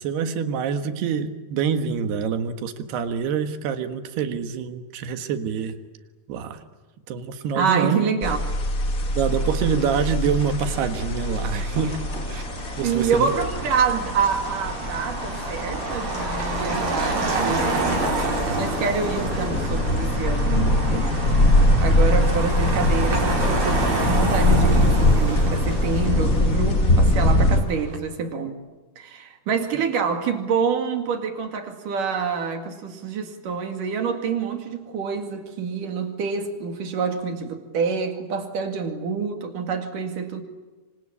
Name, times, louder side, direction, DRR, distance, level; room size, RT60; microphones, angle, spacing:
voice 1, 0.0-5.8 6.3-6.6 7.1-8.0 9.1-12.0 12.3-12.4 12.8-13.3, right 7 dB, 85° right, 3.6 m, -26 dB
voice 2, 7.5-8.4 12.8-18.2 18.6-20.8 21.8-28.6 29.0-40.4, right 5 dB, 60° right, 3.6 m, -27 dB
sound 1, 8.2-27.6, left 1 dB, 55° left, 0.9 m, -23 dB
Motor vehicle (road), 9.2-28.0, right 2 dB, 45° right, 5.7 m, -29 dB
26.5 x 25.5 x 8.6 m
omnidirectional pair, 4.5 m